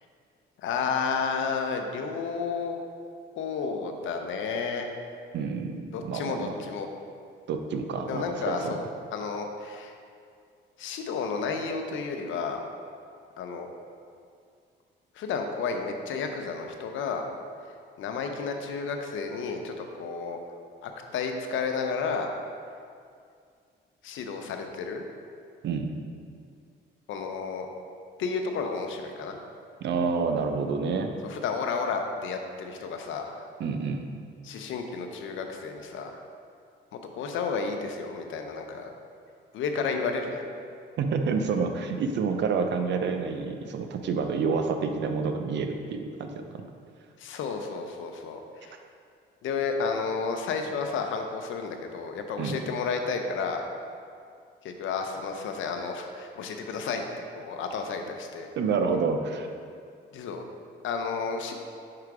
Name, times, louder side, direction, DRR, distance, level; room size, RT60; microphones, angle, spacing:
voice 1, 0.6-2.8 3.4-4.9 5.9-6.9 8.1-8.9 9.1-9.9 10.8-12.6 13.4-13.7 15.2-17.2 18.0-20.4 20.8-22.3 24.0-25.0 27.1-27.7 28.2-29.4 31.2-33.5 34.4-36.2 36.9-38.9 39.5-40.5 47.2-48.7 49.4-53.6 54.6-57.0 57.3-58.5 60.1-60.4 60.8-61.5, left 5 dB, 75° left, 4 dB, 0.7 m, -31 dB
voice 2, 5.3-6.5 7.5-8.7 25.6-26.0 29.8-31.1 33.6-34.1 41.0-46.6 52.4-52.6 58.6-59.5, right 5 dB, 65° right, 6 dB, 0.6 m, -28 dB
4.8 x 4.8 x 4.7 m, 2.3 s
cardioid pair, 90°, 20 cm